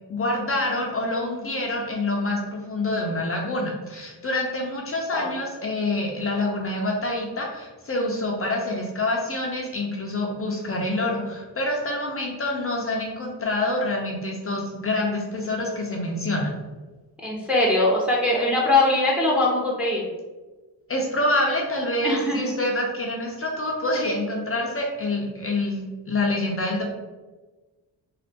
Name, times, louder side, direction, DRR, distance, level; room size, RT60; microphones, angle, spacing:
voice 1, 0.1-16.5 20.9-26.8, left 2 dB, 35° left, 0 dB, 0.6 m, -26 dB
voice 2, 17.2-20.0 22.0-22.5, left 2 dB, 5° right, -3 dB, 0.7 m, -21 dB
3.2 x 2.4 x 2.8 m, 1.2 s
cardioid pair, 80°, 42 cm